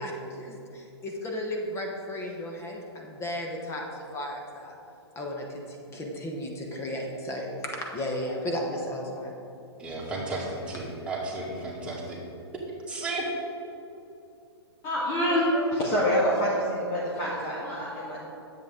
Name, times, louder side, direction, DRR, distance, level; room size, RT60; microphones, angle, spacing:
voice 1, 0.0-4.7 5.1-9.4, left 1 dB, 20° left, 0 dB, 1.2 m, -34 dB
voice 2, 9.8-12.2 12.9-13.3, right 2 dB, 5° right, -6 dB, 2.1 m, -33 dB
voice 3, 14.8-18.2, equal, 35° left, -6 dB, 1.7 m, -26 dB
10.0 x 8.0 x 3.7 m, 2.8 s
hypercardioid pair, 130°, 14 cm